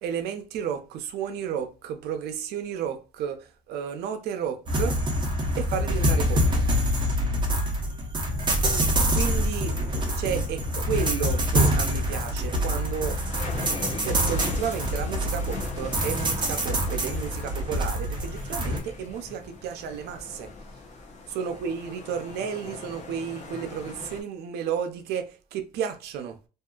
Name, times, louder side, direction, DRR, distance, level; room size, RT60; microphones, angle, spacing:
voice 1, 0.0-5.0 5.6-6.4 9.1-9.8 10.1-13.2 13.7-20.5 21.3-26.4, right 8 dB, 75° right, 0.5 m, -32 dB
sound 1, 4.7-18.8, equal, 25° right, 0.8 m, -25 dB
sound 2, 9.7-24.2, left 3 dB, 45° left, 0.7 m, -41 dB
2.7 x 2.4 x 2.3 m
cardioid pair, 110°, 17 cm